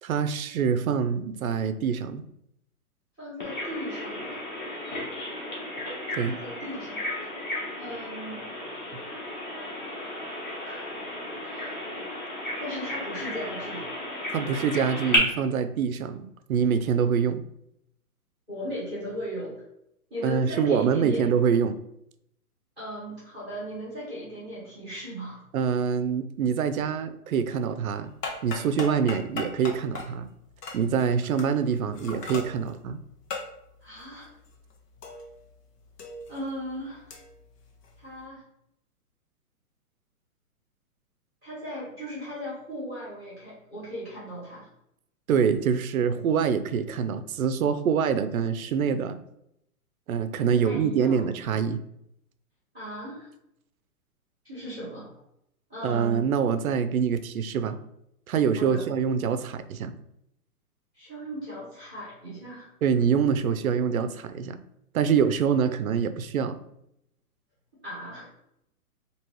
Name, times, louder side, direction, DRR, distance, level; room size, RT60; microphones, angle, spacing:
voice 1, 0.0-2.2 6.1-6.3 14.3-17.4 20.2-21.8 25.5-28.1 28.4-30.3 30.7-33.0 45.3-49.2 50.1-51.8 55.8-57.8 58.3-59.9 62.8-64.6 64.9-66.6, right 7 dB, 65° right, 10 dB, 0.5 m, -25 dB
voice 2, 3.2-4.4 6.2-7.0 7.8-8.5 10.6-11.0 11.4-11.8 12.6-13.9 18.5-19.6 20.1-21.3 22.8-25.4 33.8-34.3 36.3-37.1 38.0-38.4 41.4-44.7 50.5-51.2 52.7-53.3 54.4-55.1 55.7-56.3 58.6-58.8 60.9-62.7 67.8-68.3, equal, 5° left, -9 dB, 0.7 m, -37 dB
Bird vocalization bird call bird song, 3.4-15.2, left 1 dB, 30° left, 1.1 m, -34 dB
sound 1, 28.0-35.6 35.8-38.2, left 3 dB, 85° left, 1.2 m, -40 dB
3.0 x 2.9 x 4.4 m, 0.78 s
hypercardioid pair, 180°, 47 cm